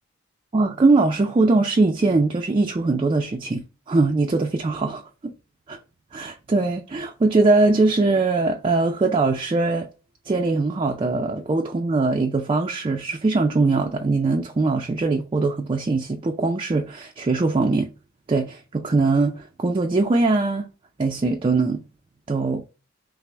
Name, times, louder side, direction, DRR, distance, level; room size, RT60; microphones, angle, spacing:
voice 1, 0.5-5.3 5.7-5.8 6.1-9.9 10.3-17.9 18.3-20.7 21.0-21.8 22.3-22.6, right 3 dB, 25° right, 0.3 m, -21 dB
5.8 x 2.0 x 3.2 m
head